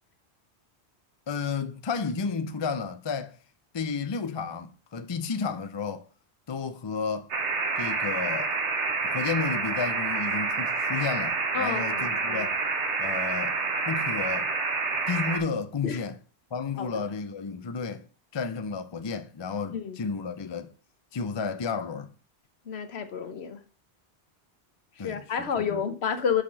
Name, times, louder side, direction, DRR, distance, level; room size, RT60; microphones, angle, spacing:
voice 1, 1.3-3.4 3.7-6.1 6.5-7.3 7.8-8.5 9.0-12.5 13.0-13.6 13.9-14.5 15.1-16.2 16.5-18.1 18.3-20.7 21.1-22.1 25.0-25.8, left 5 dB, 35° left, 0.5 m, -32 dB
sound 1, 7.3-15.4, right 4 dB, 85° right, 1.5 m, -28 dB
voice 2, 11.5-12.5 15.8-16.0 16.8-17.1 19.7-20.0 22.7-23.6 25.0-26.4, left 7 dB, 70° left, 1.1 m, -30 dB
5.9 x 5.0 x 6.0 m
omnidirectional pair, 1.1 m